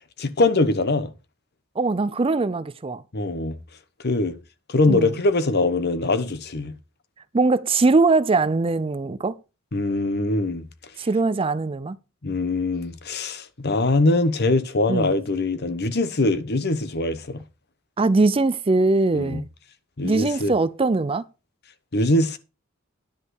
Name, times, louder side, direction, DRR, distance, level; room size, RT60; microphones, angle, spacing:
voice 1, 0.2-1.1 3.1-3.6 4.0-4.4 4.7-6.7 9.7-10.7 12.2-17.4 19.1-19.4 20.0-20.6 21.9-22.4, left 2 dB, 50° left, 1.0 m, -22 dB
voice 2, 1.8-3.0 4.9-5.2 7.3-9.4 11.0-12.0 14.9-15.1 18.0-19.5 20.0-21.3, right 3 dB, 25° right, 0.4 m, -21 dB
10.5 x 5.3 x 6.3 m
head